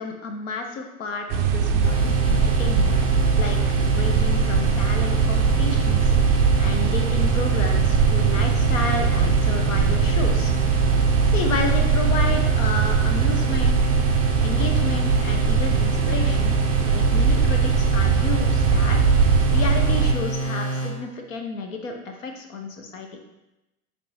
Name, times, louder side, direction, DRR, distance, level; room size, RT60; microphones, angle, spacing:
voice 1, 0.0-3.0 3.4-3.6 3.9-10.5 11.3-13.9 14.4-16.6 16.8-19.1 19.5-23.2, left 4 dB, 60° left, 4 dB, 0.9 m, -31 dB
sound 1, 1.3-20.1, right 6 dB, 30° right, 0.4 m, -21 dB
sound 2, 1.8-20.9, right 2 dB, 30° left, 1.8 m, -27 dB
9.3 x 3.1 x 3.2 m, 0.95 s
figure-of-eight pair, 85°, 45 cm